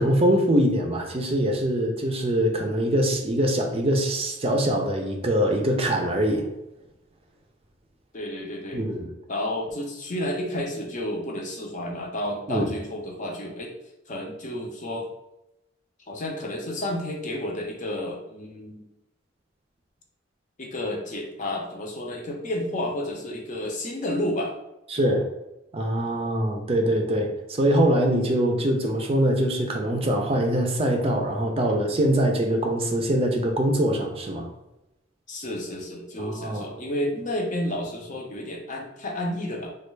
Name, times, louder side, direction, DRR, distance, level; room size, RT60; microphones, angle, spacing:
voice 1, 0.0-6.5 8.7-9.1 12.5-12.7 24.9-25.2 25.7-34.5 36.2-36.7, right 1 dB, 30° right, 2 dB, 0.5 m, -23 dB
voice 2, 8.1-8.9 9.3-13.7 14.1-15.1 16.1-18.9 20.6-24.5 35.3-39.7, left 1 dB, 45° left, 0 dB, 0.6 m, -31 dB
3.3 x 2.3 x 3.2 m, 0.91 s
head